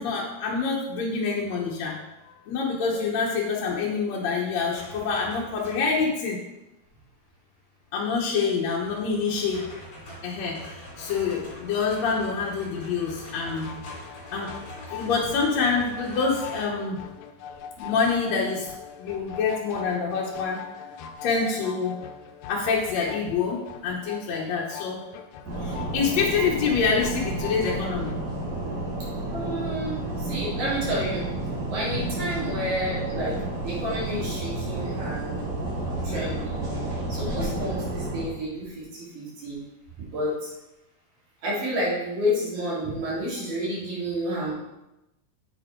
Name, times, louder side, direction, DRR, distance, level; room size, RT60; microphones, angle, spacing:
voice 1, 0.0-2.0 2.2-6.4 7.9-9.7 10.2-13.7 14.3-14.5 14.9-17.0 17.8-18.7 19.0-20.6 21.2-22.0 22.5-25.0 25.6-28.1, left 5 dB, 65° left, -3 dB, 2.0 m, -26 dB
sound 1, 4.7-6.1 8.8-16.9 19.1-19.5, left 1 dB, 30° left, 3.0 m, -44 dB
sound 2, 13.5-28.2, left 7 dB, 80° left, 2.2 m, -42 dB
sound 3, 25.4-38.2, right 2 dB, 55° right, 4.0 m, -31 dB
voice 2, 29.3-31.3 31.7-35.3 36.0-36.7 37.1-39.6 40.1-40.5 41.4-44.5, equal, 70° right, -8 dB, 5.3 m, -30 dB
8.7 x 8.7 x 3.8 m, 0.95 s
omnidirectional pair, 3.9 m